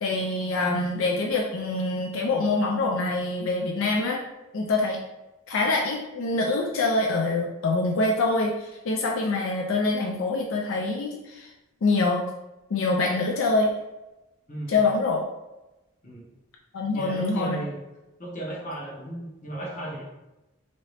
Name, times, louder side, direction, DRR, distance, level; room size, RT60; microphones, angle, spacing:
voice 1, 0.0-4.2 4.5-5.0 5.5-11.5 11.8-12.2 12.7-13.7 14.7-15.3 16.7-17.6, left 3 dB, 75° left, 0 dB, 0.4 m, -25 dB
voice 2, 14.5-14.8 16.0-16.3 16.9-17.8 18.2-20.0, right 1 dB, 35° left, -4 dB, 0.9 m, -35 dB
2.9 x 2.7 x 3.2 m, 1.0 s
head